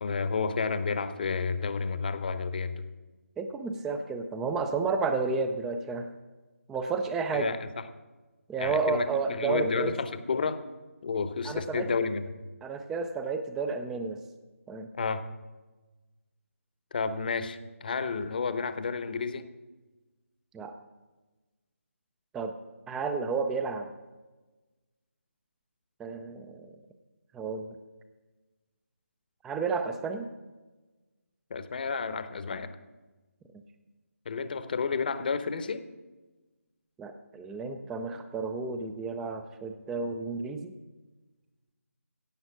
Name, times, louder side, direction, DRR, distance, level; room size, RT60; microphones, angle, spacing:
voice 1, 0.0-2.8 7.3-7.6 8.6-10.6 11.0-12.2 15.0-15.2 16.9-19.5 31.5-32.7 34.2-35.8, left 5 dB, 40° left, 12 dB, 0.9 m, -31 dB
voice 2, 3.4-6.1 6.7-7.6 8.5-9.9 11.4-11.9 12.6-14.2 14.7-14.9 20.5-20.8 22.3-22.5 22.9-23.9 26.0-26.7 27.3-27.7 29.4-30.3 37.0-40.7, right 4 dB, 5° right, 8 dB, 0.4 m, -31 dB
16.0 x 8.0 x 5.9 m, 1.2 s
figure-of-eight pair, 160°, 8 cm